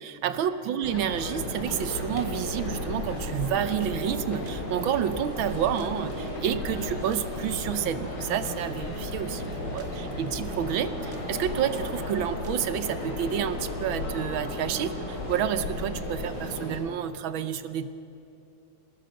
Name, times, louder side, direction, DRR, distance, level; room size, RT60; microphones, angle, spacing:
voice 1, 0.0-17.9, right 9 dB, 75° right, 11 dB, 1.5 m, -29 dB
sound 1, 0.8-16.3, left 3 dB, 80° left, 2.7 m, -39 dB
sound 2, 0.8-16.8, equal, 55° left, 4.7 m, -35 dB
sound 3, 3.1-12.8, right 6 dB, 50° right, 0.9 m, -48 dB
23.5 x 19.5 x 6.4 m, 2.7 s
omnidirectional pair, 2.2 m